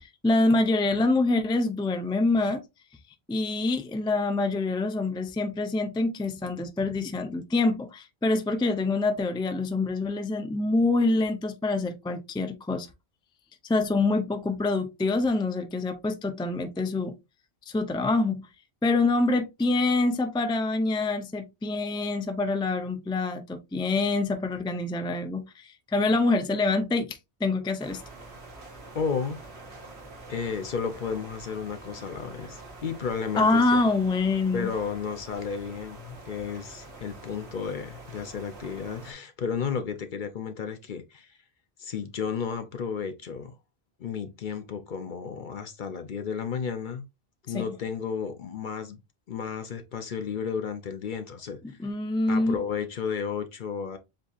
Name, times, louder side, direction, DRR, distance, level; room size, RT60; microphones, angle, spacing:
voice 1, 0.0-2.6 3.3-12.9 13.6-17.1 17.7-18.5 18.8-28.0 33.4-34.7 47.5-47.6 51.8-52.6, left 3 dB, 5° left, 0.4 m, -26 dB
sound 1, 27.8-39.1, right 2 dB, 75° right, 1.9 m, -46 dB
voice 2, 28.9-29.4 30.3-33.8 34.5-41.4 41.8-43.6 44.0-47.0 47.4-49.0 49.3-51.8 52.3-54.0, left 6 dB, 55° left, 0.7 m, -33 dB
7.6 x 2.7 x 2.4 m
omnidirectional pair, 1.1 m